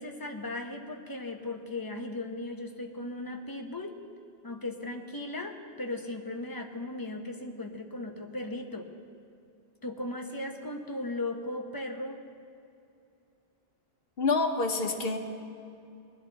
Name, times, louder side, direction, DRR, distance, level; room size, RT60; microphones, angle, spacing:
voice 1, 0.0-3.9 4.4-8.9 9.8-12.2, left 2 dB, 20° left, 3 dB, 0.9 m, -37 dB
voice 2, 14.2-15.2, left 3 dB, 70° left, 4 dB, 1.3 m, -27 dB
19.5 x 12.0 x 4.1 m, 2.6 s
omnidirectional pair, 1.0 m